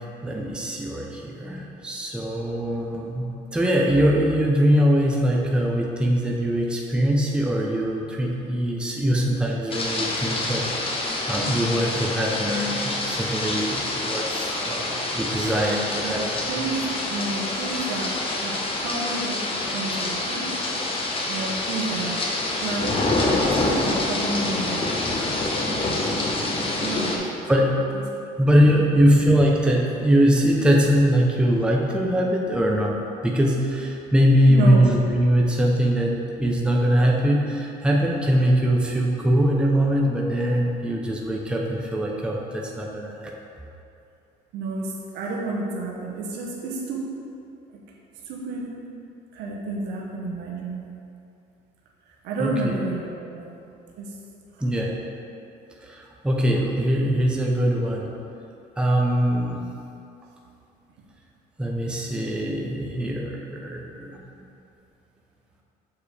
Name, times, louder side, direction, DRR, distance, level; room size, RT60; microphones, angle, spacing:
voice 1, 0.2-3.2 3.5-10.9 11.3-16.4 27.5-27.7 28.4-43.3 52.4-52.7 54.6-55.0 55.8-58.1 58.8-59.6 61.6-64.5, equal, 5° right, -2 dB, 0.6 m, -22 dB
sound 1, 9.7-27.2, left 2 dB, 30° left, 0.9 m, -26 dB
voice 2, 16.0-18.2 18.4-20.5 21.3-22.2 22.6-25.2 26.8-27.4 27.9-28.0 28.5-28.9 34.5-34.9 44.5-47.1 48.3-48.7 49.3-50.8 52.2-53.6 54.0-54.1 54.5-54.6, right 2 dB, 85° right, -2 dB, 0.9 m, -31 dB
6.8 x 4.6 x 3.4 m, 2.7 s
cardioid pair, 110°, 17 cm